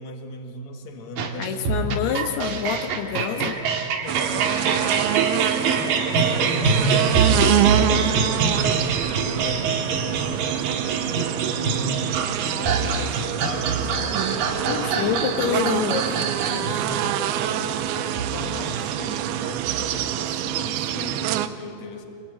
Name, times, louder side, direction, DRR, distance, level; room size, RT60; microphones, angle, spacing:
voice 1, 0.0-1.6 2.0-2.2 2.4-2.6 4.0-5.1 5.7-14.9 16.4-22.1, left 2 dB, 50° left, 3 dB, 3.2 m, -38 dB
sound 1, 1.2-21.0, right 5 dB, 65° right, 3.4 m, -25 dB
voice 2, 1.4-3.6 5.6-5.9 14.7-16.2, left 8 dB, 80° left, 6 dB, 3.2 m, -27 dB
sound 2, 4.1-21.5, right 11 dB, 80° right, 2.7 m, -26 dB
25.5 x 22.5 x 9.1 m, 2.7 s
omnidirectional pair, 4.6 m